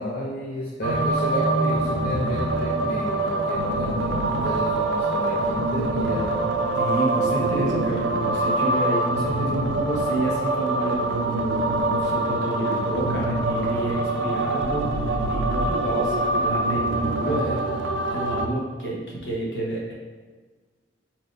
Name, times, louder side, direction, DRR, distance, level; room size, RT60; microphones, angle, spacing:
voice 1, 0.0-6.4 17.2-17.7, left 1 dB, 55° left, -4 dB, 0.5 m, -31 dB
sound 1, 0.8-18.5, right 2 dB, 90° right, 0.5 m, -24 dB
voice 2, 6.8-17.4 18.1-19.9, right 1 dB, 70° left, -3 dB, 1.1 m, -29 dB
4.5 x 4.2 x 2.6 m, 1.4 s
head